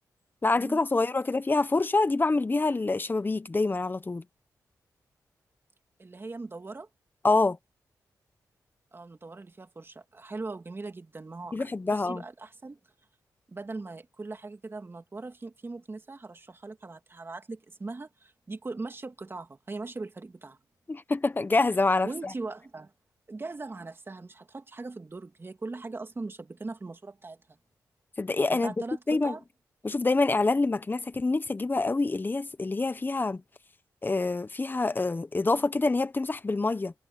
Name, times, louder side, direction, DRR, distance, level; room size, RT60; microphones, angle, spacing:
voice 1, 0.4-4.2 7.2-7.6 11.5-12.2 20.9-22.1 28.2-28.7 29.1-29.3 29.8-33.4 34.0-36.9, left 3 dB, 30° left, 1.2 m, -26 dB
voice 2, 6.0-6.9 8.9-12.8 13.5-20.6 22.0-22.9 23.3-27.6 28.5-29.4, right 3 dB, 35° right, 2.8 m, -40 dB
cardioid pair, 65°, 7 cm